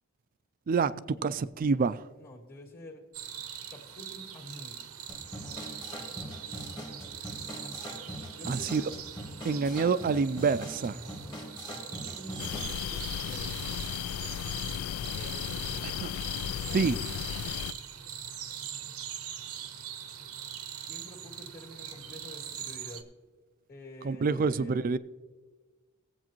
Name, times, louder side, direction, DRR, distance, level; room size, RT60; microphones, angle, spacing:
voice 1, 0.7-2.0 8.5-8.8 9.4-11.0 16.0-16.1 16.7-17.0 24.0-25.0, right 5 dB, 40° right, 0.3 m, -27 dB
voice 2, 2.1-3.0 3.7-4.8 5.4-5.7 7.6-7.9 8.3-9.0 10.9-11.4 11.8-13.6 15.2-15.9 20.8-23.0 23.7-24.8, equal, 45° left, 2.0 m, -48 dB
sound 1, 3.1-23.0, right 9 dB, 90° right, 0.8 m, -42 dB
sound 2, 5.1-12.8, equal, 20° left, 1.3 m, -42 dB
sound 3, 12.4-17.7, left 10 dB, 85° left, 0.3 m, -35 dB
18.0 x 8.2 x 3.0 m
head